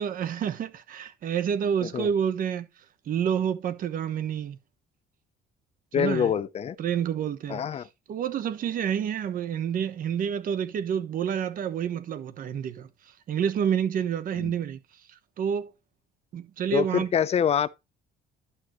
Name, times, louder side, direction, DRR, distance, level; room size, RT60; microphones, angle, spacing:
voice 1, 0.0-2.7 3.1-4.6 6.0-6.3 6.8-7.6 8.1-12.9 13.3-14.8 15.4-15.7 16.3-17.1, right 8 dB, 55° right, 1.1 m, -28 dB
voice 2, 5.9-6.8 7.5-7.9 14.4-14.5 16.7-17.7, left 8 dB, 40° left, 0.6 m, -25 dB
11.5 x 6.3 x 3.1 m
cardioid pair, 110°, 17 cm